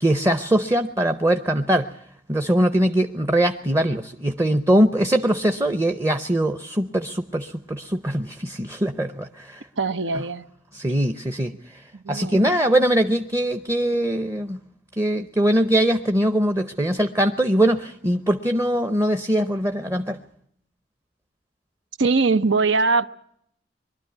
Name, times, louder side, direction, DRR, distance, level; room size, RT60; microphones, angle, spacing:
voice 1, 0.0-1.9 2.3-9.6 10.7-11.5 12.1-14.6 15.0-20.2, right 1 dB, 15° right, 0.7 m, -22 dB
voice 2, 9.8-10.5 11.9-12.6 22.0-23.1, right 4 dB, 80° right, 0.9 m, -22 dB
23.0 x 12.5 x 9.5 m
head